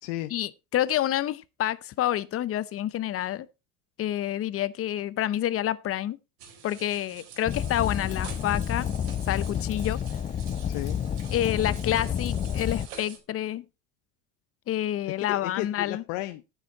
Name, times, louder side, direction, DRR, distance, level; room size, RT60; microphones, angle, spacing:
voice 1, 0.3-3.5 4.0-6.2 6.6-8.9 9.3-10.0 11.3-13.6 14.7-16.0, left 12 dB, 40° left, 0.8 m, -28 dB
Water-in-sink-cleaning-dishes, 6.4-13.2, right 7 dB, 75° right, 4.1 m, -47 dB
Fire, 7.5-12.9, left 8 dB, 20° left, 0.5 m, -30 dB
voice 2, 10.7-11.0 15.1-16.5, left 17 dB, 70° left, 0.9 m, -34 dB
9.9 x 9.1 x 4.2 m
supercardioid pair, 110°, 36 cm